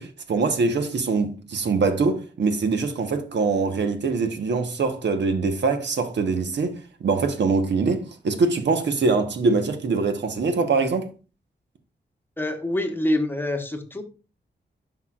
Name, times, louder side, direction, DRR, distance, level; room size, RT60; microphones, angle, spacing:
voice 1, 0.0-11.1, right 4 dB, 70° right, 1.1 m, -23 dB
voice 2, 12.4-14.0, left 1 dB, 10° left, 1.0 m, -26 dB
10.5 x 5.8 x 2.4 m
wide cardioid pair, 115°, 19 cm